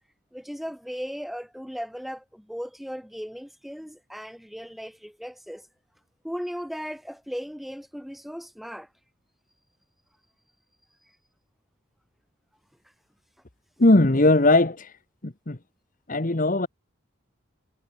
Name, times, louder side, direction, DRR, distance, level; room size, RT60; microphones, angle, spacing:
voice 1, 0.3-5.7 6.2-8.9, equal, ahead, 5.5 m, -37 dB
voice 2, 13.8-14.9 15.2-15.6 16.1-16.7, left 2 dB, 40° left, 1.2 m, -19 dB
head